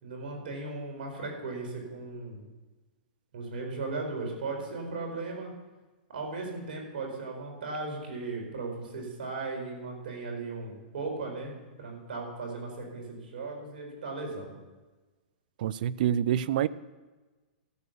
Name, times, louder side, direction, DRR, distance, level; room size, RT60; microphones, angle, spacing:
voice 1, 0.0-2.5 3.3-5.5 6.1-11.5 11.8-14.5, right 3 dB, 75° right, 2 dB, 4.7 m, -37 dB
voice 2, 15.6-16.7, right 10 dB, 60° right, 19 dB, 0.5 m, -26 dB
12.5 x 8.2 x 6.9 m, 1.2 s
hypercardioid pair, 140°, 5 cm